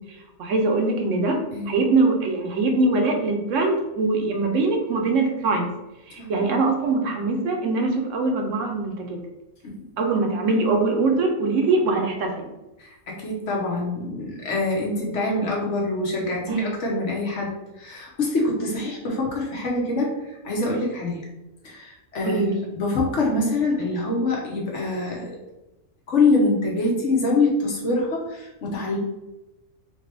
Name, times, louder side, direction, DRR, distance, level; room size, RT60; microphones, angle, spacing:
voice 1, 0.4-1.4 1.7-5.7 6.1-9.2 10.0-12.5 16.5-16.6 22.2-22.5, right 3 dB, 70° right, 2 dB, 1.1 m, -22 dB
voice 2, 12.8-20.2 20.4-21.2 21.6-25.3 26.1-29.0, left 2 dB, 60° left, -2 dB, 1.3 m, -25 dB
4.1 x 3.0 x 3.3 m, 0.99 s
omnidirectional pair, 1.4 m